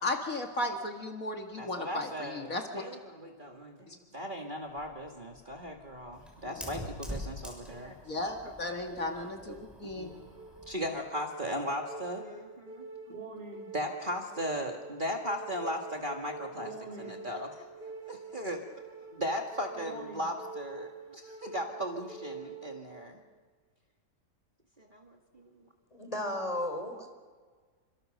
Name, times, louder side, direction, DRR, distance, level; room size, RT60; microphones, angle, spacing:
voice 1, 0.0-2.8 3.9-4.0 8.1-9.5 9.8-10.1, left 2 dB, 55° left, 3 dB, 2.3 m, -35 dB
voice 2, 1.5-8.0 8.4-8.5 8.9-10.2 10.7-12.9 13.7-18.6 19.1-23.2 24.8-25.7, equal, 30° right, 2 dB, 2.1 m, -37 dB
Fire, 4.7-10.8, equal, ahead, 6.6 m, -45 dB
sound 1, 10.1-23.1, right 3 dB, 80° right, 4.3 m, -46 dB
voice 3, 25.9-27.1, left 1 dB, 20° left, 5 dB, 3.9 m, -34 dB
28.5 x 25.5 x 6.6 m, 1.5 s
omnidirectional pair, 1.8 m